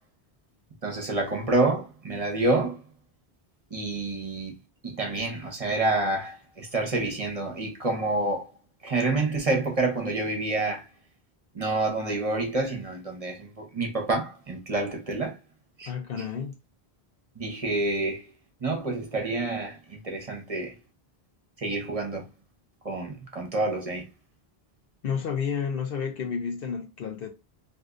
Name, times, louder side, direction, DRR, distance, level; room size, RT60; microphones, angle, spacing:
voice 1, 0.8-2.8 3.7-4.5 4.8-8.5 8.8-10.8 11.5-15.4 15.8-15.9 17.4-18.3 18.6-20.7 21.6-22.2 22.8-24.1, right 2 dB, 40° right, 0.9 m, -28 dB
voice 2, 15.9-16.6 25.0-27.3, left 6 dB, 70° left, 0.8 m, -31 dB
3.4 x 2.6 x 2.5 m
omnidirectional pair, 1.0 m